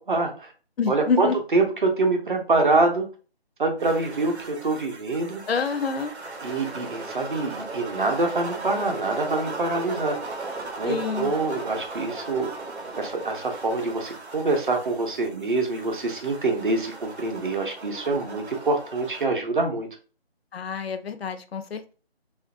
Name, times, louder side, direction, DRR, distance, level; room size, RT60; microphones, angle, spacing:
voice 1, 0.1-0.5 0.9-3.1 3.6-5.4 6.4-10.2 10.8-12.5 12.9-19.9, right 3 dB, 50° right, 3 dB, 0.7 m, -25 dB
voice 2, 0.8-1.4 5.5-6.1 10.9-11.3 20.5-21.9, left 5 dB, 70° left, 9 dB, 0.5 m, -27 dB
sound 1, 3.8-19.3, right 3 dB, 85° right, 0.9 m, -37 dB
2.9 x 2.5 x 2.4 m, 0.37 s
figure-of-eight pair, 170°, 32 cm